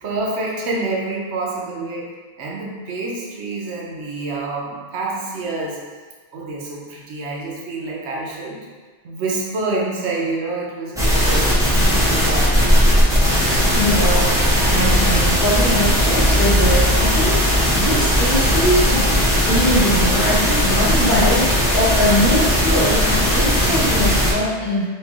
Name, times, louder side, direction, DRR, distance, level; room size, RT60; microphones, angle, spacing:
voice 1, 0.0-2.1 2.4-5.8 6.3-8.7 9.0-12.6 12.8-13.0, right 3 dB, 75° right, -3 dB, 0.9 m, -27 dB
sound 1, 11.0-24.3, equal, 5° right, 0.5 m, -17 dB
voice 2, 13.4-24.9, left 1 dB, 50° left, -8 dB, 1.1 m, -22 dB
3.1 x 2.4 x 3.4 m, 1.4 s
omnidirectional pair, 1.2 m